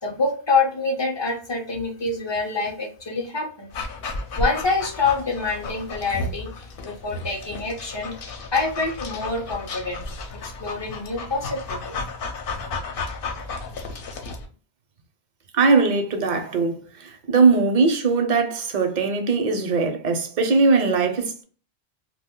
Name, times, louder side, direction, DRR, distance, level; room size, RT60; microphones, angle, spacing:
voice 1, 0.0-3.7 4.4-8.1 8.5-10.1 10.4-12.0, left 3 dB, 35° left, 0.5 m, -26 dB
Dog, 3.7-14.5, left 3 dB, 65° left, 0.8 m, -33 dB
voice 2, 15.5-21.4, right 4 dB, 55° right, 0.6 m, -20 dB
2.4 x 2.1 x 3.5 m
omnidirectional pair, 1.0 m